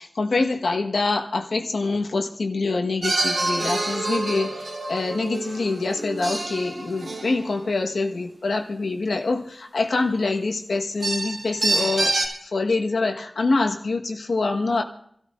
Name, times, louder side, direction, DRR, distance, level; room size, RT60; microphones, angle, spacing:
voice 1, 0.0-14.8, left 3 dB, 85° left, 3 dB, 1.4 m, -25 dB
sound 1, 3.0-7.9 11.0-12.3, right 2 dB, 85° right, 3.3 m, -27 dB
28.5 x 13.0 x 2.6 m, 0.67 s
wide cardioid pair, 80°, 0 cm